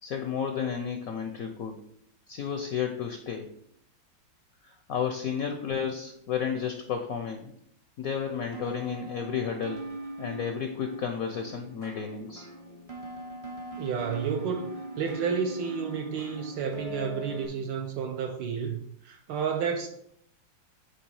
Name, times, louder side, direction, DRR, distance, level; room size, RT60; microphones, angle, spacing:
voice 1, 0.0-1.8 2.3-3.5 4.6-7.5 8.0-9.9 10.2-12.4, left 7 dB, 70° left, 0.8 m, -32 dB
sound 1, 8.5-17.5, right 1 dB, 45° right, 0.4 m, -41 dB
voice 2, 13.8-14.7 15.0-19.9, right 6 dB, 75° right, 1.3 m, -31 dB
8.2 x 3.4 x 4.7 m
omnidirectional pair, 2.1 m